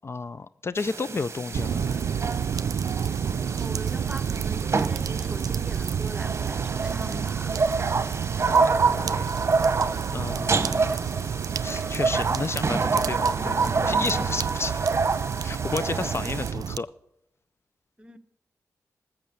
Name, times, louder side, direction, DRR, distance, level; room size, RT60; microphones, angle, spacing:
voice 1, 0.0-2.1 8.4-9.3 10.1-10.9 11.6-14.8 15.4-16.9, left 4 dB, 45° left, 0.4 m, -32 dB
sound 1, 0.8-16.5, right 4 dB, 45° right, 1.0 m, -28 dB
sound 2, 1.5-16.8, right 7 dB, 85° right, 0.4 m, -30 dB
voice 2, 3.3-7.6 18.0-18.2, right 1 dB, 15° right, 1.1 m, -41 dB
13.5 x 7.4 x 8.8 m
cardioid pair, 65°, 6 cm